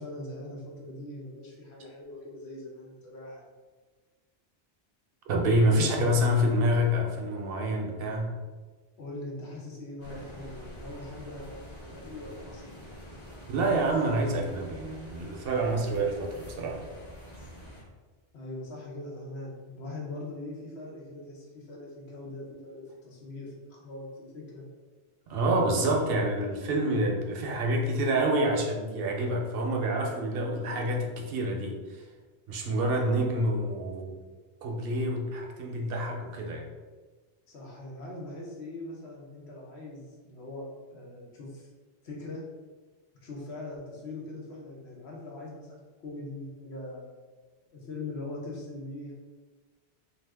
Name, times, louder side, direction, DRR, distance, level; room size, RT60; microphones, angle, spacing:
voice 1, 0.0-3.5 5.7-6.2 9.0-12.8 18.3-24.7 32.6-32.8 37.5-41.7 42.0-42.5 43.2-47.0 47.7-49.1, left 2 dB, 80° left, -2 dB, 1.0 m, -41 dB
voice 2, 5.3-8.3 13.5-16.8 25.3-32.0 32.5-34.2 34.6-36.7, right 1 dB, 70° right, 1 dB, 0.7 m, -27 dB
sound 1, 10.0-17.8, equal, 30° left, 0.9 m, -46 dB
2.5 x 2.4 x 3.3 m, 1.4 s
omnidirectional pair, 1.1 m